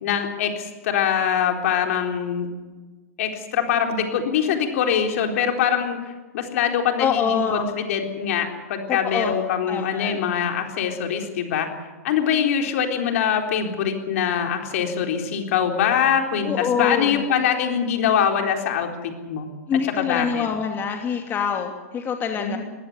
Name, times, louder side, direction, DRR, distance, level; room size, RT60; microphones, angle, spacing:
voice 1, 0.0-2.5 3.2-11.7 12.0-19.5 20.0-20.5 22.3-22.6, left 8 dB, 60° left, 4 dB, 4.0 m, -23 dB
voice 2, 7.0-7.7 8.9-9.4 9.7-10.2 16.4-17.2 19.7-22.6, left 7 dB, 25° left, 3 dB, 2.6 m, -25 dB
20.5 x 16.0 x 9.6 m, 1.3 s
hypercardioid pair, 115°, 8 cm